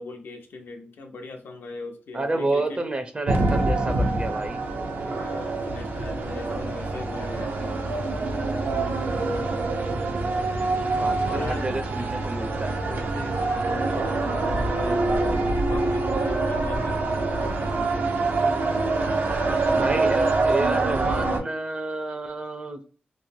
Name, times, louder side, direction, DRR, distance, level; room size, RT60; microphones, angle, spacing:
voice 1, 0.0-2.8 5.0-7.8 11.2-11.7 12.9-18.1, left 3 dB, 85° left, 0.7 m, -39 dB
voice 2, 2.1-4.6 10.9-12.8 19.7-22.8, right 2 dB, 30° right, 0.5 m, -29 dB
sound 1, 3.3-21.4, right 3 dB, 75° right, 0.6 m, -25 dB
3.1 x 2.1 x 2.6 m
wide cardioid pair, 105°, 3 cm